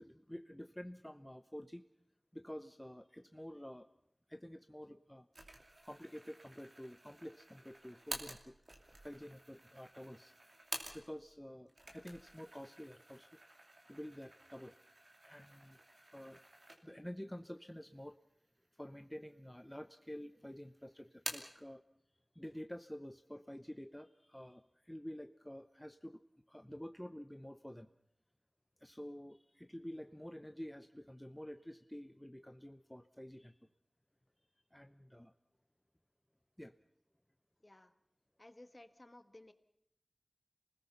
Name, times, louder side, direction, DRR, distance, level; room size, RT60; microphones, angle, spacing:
voice 1, 0.0-1.8 2.3-3.9 4.3-5.3 5.8-8.6 9.0-10.3 10.9-13.4 13.9-14.8 15.2-16.5 16.8-18.2 18.7-21.8 22.3-26.2 26.5-27.9 28.8-33.5 34.7-35.3 36.6-36.7, equal, 10° left, 9 dB, 0.7 m, -49 dB
sound 1, 5.3-11.3 11.7-17.1 17.6-17.7 18.5-19.2 19.5-20.2 20.5-21.6, right 1 dB, 60° right, 2.8 m, -50 dB
voice 2, 37.6-37.9 38.4-39.5, left 1 dB, 40° left, 9 dB, 1.6 m, -57 dB
28.0 x 20.0 x 5.7 m, 0.76 s
wide cardioid pair, 50°, 0 cm